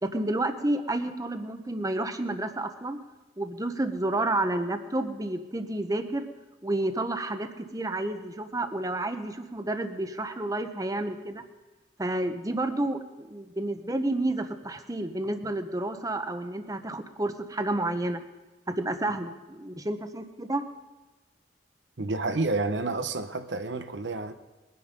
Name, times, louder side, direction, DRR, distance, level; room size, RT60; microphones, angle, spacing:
voice 1, 0.0-3.0 3.4-6.3 6.6-11.4 12.0-18.2 18.7-20.6, right 1 dB, 20° right, 0.9 m, -30 dB
voice 2, 22.0-24.3, right 3 dB, 85° right, 0.9 m, -29 dB
21.5 x 9.6 x 5.3 m
head